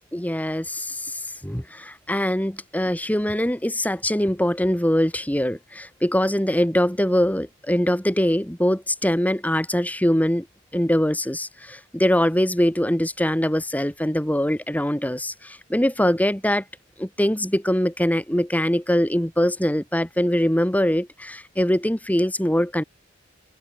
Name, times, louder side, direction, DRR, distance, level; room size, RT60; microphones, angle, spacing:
voice 1, 0.1-10.5 10.7-16.6 17.0-22.8, equal, 10° left, 2.4 m, -23 dB
head